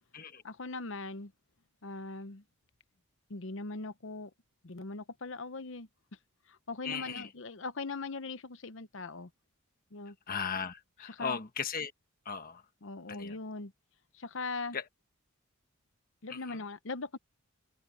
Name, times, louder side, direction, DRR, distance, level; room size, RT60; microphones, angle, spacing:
voice 1, 0.4-1.3 1.8-2.4 3.3-4.3 4.6-5.9 6.5-9.3 9.9-10.1 11.0-11.4 12.8-13.7 14.1-14.8 16.2-17.2, left 3 dB, 60° left, 0.9 m, -40 dB
voice 2, 6.8-7.3 10.3-11.9 12.2-12.6 13.1-13.4 14.7-14.8 16.3-16.6, left 6 dB, 40° left, 1.3 m, -37 dB
head